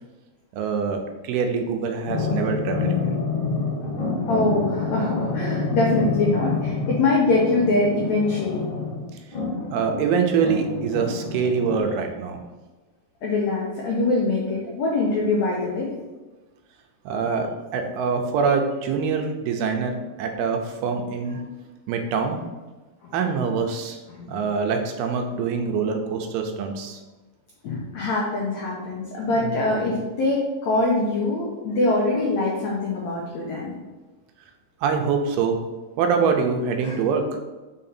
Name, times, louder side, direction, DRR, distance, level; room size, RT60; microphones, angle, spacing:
voice 1, 0.5-2.9 9.7-12.4 17.1-19.9 20.2-21.4 21.9-22.4 23.1-24.0 24.3-27.0 34.8-35.6 36.0-37.2, right 5 dB, 85° right, 4 dB, 2.6 m, -24 dB
sound 1, 2.1-11.8, left 4 dB, 60° left, 2.5 m, -27 dB
voice 2, 4.3-8.7 13.2-15.9 23.0-23.2 24.1-24.5 27.6-33.7 36.8-37.0, left 2 dB, 85° left, -3 dB, 1.5 m, -23 dB
6.0 x 3.8 x 4.2 m, 1.2 s
omnidirectional pair, 4.5 m